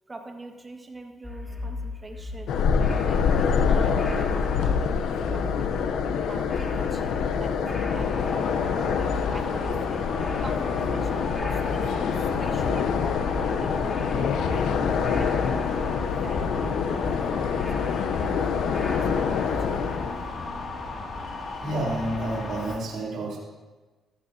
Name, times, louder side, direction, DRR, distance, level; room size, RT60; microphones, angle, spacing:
voice 1, 0.1-2.6 2.9-5.7 6.3-10.1 10.4-20.1, right 2 dB, 25° right, 4 dB, 1.6 m, -43 dB
sound 1, 1.2-19.9, left 3 dB, 15° left, 2.1 m, -36 dB
sound 2, 2.5-20.4, left 6 dB, 80° left, 0.7 m, -26 dB
sound 3, 8.0-22.8, left 3 dB, 60° left, 2.4 m, -35 dB
voice 2, 21.5-23.4, right 1 dB, 65° right, -4 dB, 3.1 m, -29 dB
14.5 x 14.0 x 2.8 m, 1.3 s
cardioid pair, 90°, 0 cm